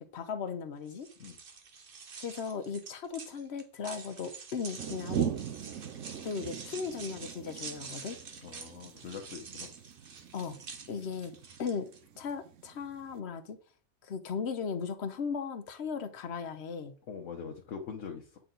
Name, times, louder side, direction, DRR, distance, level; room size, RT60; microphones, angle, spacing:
voice 1, 0.0-1.1 2.2-5.3 6.2-8.2 10.3-10.6 10.9-11.9 12.2-13.6 14.0-17.0, left 6 dB, 65° left, 10 dB, 1.1 m, -37 dB
sound 1, 0.9-12.0, right 5 dB, 50° right, 1.1 m, -47 dB
sound 2, 4.8-13.2, right 9 dB, 80° right, 1.1 m, -40 dB
voice 2, 8.4-9.7 17.1-18.4, left 6 dB, 80° left, 2 dB, 1.3 m, -43 dB
8.2 x 4.4 x 3.8 m, 0.40 s
omnidirectional pair, 1.3 m